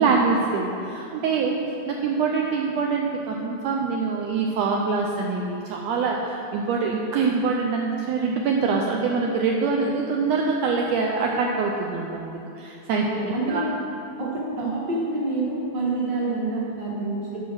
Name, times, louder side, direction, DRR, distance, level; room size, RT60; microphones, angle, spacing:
voice 1, 0.0-1.6 1.8-13.0 13.5-13.7, right 4 dB, 80° right, 0 dB, 1.5 m, -24 dB
voice 2, 12.9-13.6 14.2-17.4, right 2 dB, 40° right, -5 dB, 1.8 m, -27 dB
8.8 x 5.4 x 6.1 m, 2.7 s
omnidirectional pair, 3.5 m